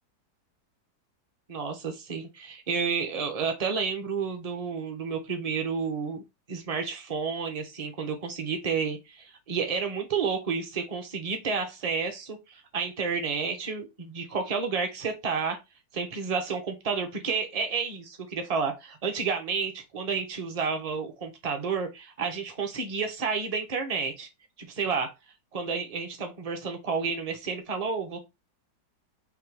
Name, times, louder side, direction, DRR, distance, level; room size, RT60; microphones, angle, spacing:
voice 1, 1.5-6.2 6.5-15.6 15.9-24.3 24.6-25.1 25.5-28.2, right 5 dB, 30° right, 0.6 m, -30 dB
3.6 x 3.0 x 4.6 m
omnidirectional pair, 1.8 m